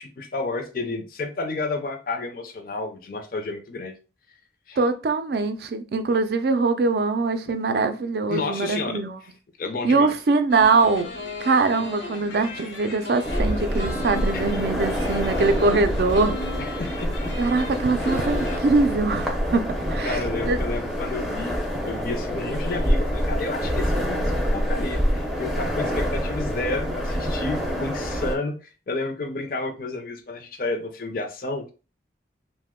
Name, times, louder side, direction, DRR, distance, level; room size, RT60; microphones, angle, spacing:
voice 1, 0.0-3.9 4.7-4.8 8.3-9.0 9.6-10.1 14.3-14.5 16.6-17.3 20.0-21.6 21.8-28.6 28.9-31.7, left 3 dB, 50° left, 0.5 m, -31 dB
voice 2, 4.8-9.2 9.8-11.1 11.4-16.4 17.4-20.2 20.5-20.6, right 3 dB, 60° right, 0.4 m, -22 dB
sound 1, 10.5-18.6, left 2 dB, 85° left, 0.8 m, -36 dB
sound 2, 13.2-28.4, equal, ahead, 0.5 m, -26 dB
2.8 x 2.1 x 3.5 m
head